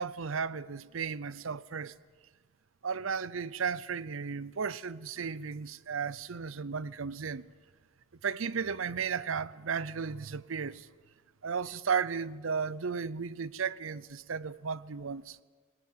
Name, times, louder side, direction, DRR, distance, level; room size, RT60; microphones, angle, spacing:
voice 1, 0.0-1.9 2.8-7.5 8.2-10.9 11.4-15.4, right 6 dB, 75° right, 0.6 m, -34 dB
22.0 x 18.5 x 9.2 m
head